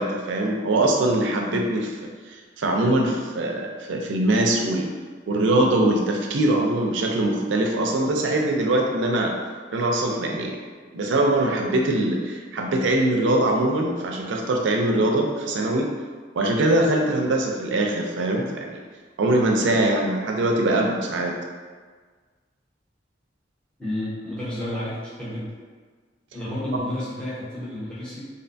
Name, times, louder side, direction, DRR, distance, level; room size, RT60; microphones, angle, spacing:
voice 1, 0.0-1.9 2.3-4.9 5.3-9.3 9.7-10.6 10.9-15.9 16.3-18.8 19.2-21.4, right 1 dB, 75° right, 1 dB, 0.4 m, -22 dB
voice 2, 23.8-25.5 26.3-28.3, left 1 dB, 5° left, -11 dB, 0.9 m, -31 dB
2.6 x 2.2 x 2.5 m, 1.5 s
head